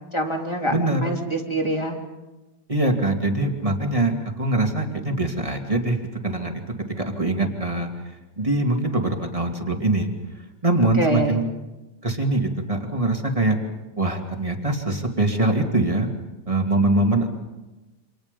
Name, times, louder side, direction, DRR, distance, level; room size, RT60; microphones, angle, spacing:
voice 1, 0.1-0.7 1.0-2.0 11.0-11.4, right 1 dB, 15° left, 1 dB, 3.1 m, -25 dB
voice 2, 0.7-1.1 2.7-6.0 6.2-6.6 7.2-7.9 8.4-10.1 10.6-11.5 12.0-13.6 14.0-16.1 16.5-17.3, right 2 dB, 15° right, 2 dB, 2.5 m, -23 dB
28.5 x 27.0 x 5.3 m, 1.1 s
omnidirectional pair, 2.1 m